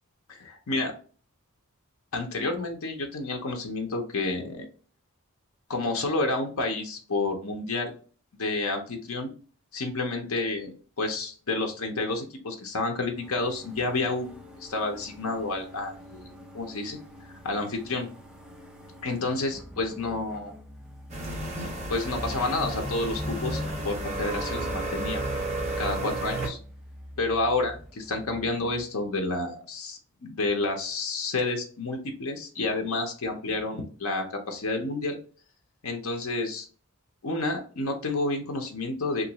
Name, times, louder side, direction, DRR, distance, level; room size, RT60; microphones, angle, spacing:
voice 1, 0.3-0.9 2.1-4.7 5.7-7.9 8.4-9.3 9.7-10.7 11.0-14.3 14.6-17.0 17.4-18.1 19.0-20.5 21.9-25.3 25.8-26.6 27.2-35.2 35.8-36.7 37.2-39.3, left 2 dB, 75° left, 3 dB, 0.7 m, -30 dB
sound 1, 13.1-28.8, left 1 dB, 5° right, 0.3 m, -47 dB
sound 2, 21.1-26.5, right 1 dB, 30° right, 0.9 m, -32 dB
3.0 x 2.5 x 2.9 m, 0.40 s
head